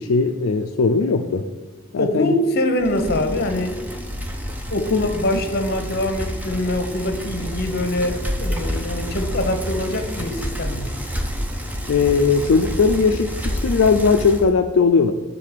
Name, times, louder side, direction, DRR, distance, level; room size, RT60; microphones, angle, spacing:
voice 1, 0.0-1.4 1.9-2.3 4.9-5.1 11.9-15.1, left 5 dB, 70° left, 3 dB, 0.4 m, -18 dB
voice 2, 2.0-3.8 4.7-10.9, left 1 dB, 45° left, 6 dB, 0.9 m, -24 dB
Bicycle, 2.8-14.5, equal, 5° right, 0.6 m, -29 dB
7.5 x 3.8 x 6.6 m, 1.3 s
head